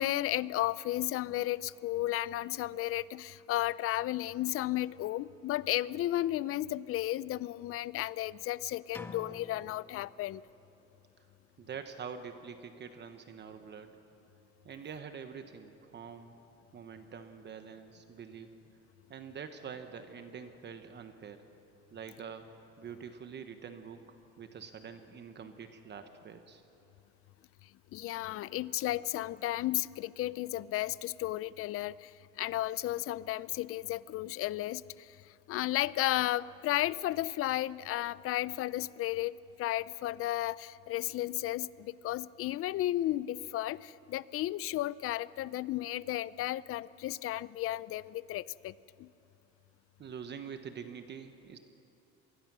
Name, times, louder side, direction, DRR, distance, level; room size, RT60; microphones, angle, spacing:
voice 1, 0.0-10.4 27.9-32.1 32.4-35.1 35.5-48.7 49.0-49.1, left 15 dB, 45° left, 19 dB, 0.5 m, -33 dB
sound 1, 8.9-10.8, left 2 dB, 5° left, 0.7 m, -49 dB
voice 2, 11.6-13.9 14.6-16.3 16.7-18.5 19.1-21.5 21.9-22.5 22.8-24.0 24.4-26.6 50.0-51.6, right 6 dB, 35° right, 8 dB, 1.1 m, -45 dB
26.0 x 20.0 x 6.1 m, 2.8 s
cardioid pair, 140°, 31 cm